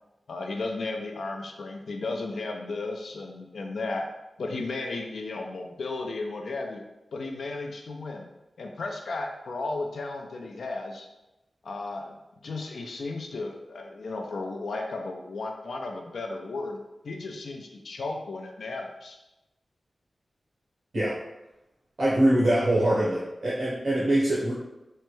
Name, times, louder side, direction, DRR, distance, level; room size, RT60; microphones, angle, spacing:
voice 1, 0.3-4.1 4.4-6.8 7.1-8.3 8.6-11.1 11.6-19.2, left 3 dB, 85° left, 2 dB, 0.4 m, -34 dB
voice 2, 22.0-24.5, right 1 dB, 70° right, -8 dB, 0.8 m, -23 dB
3.0 x 2.2 x 3.0 m, 0.97 s
cardioid pair, 60°, 0 cm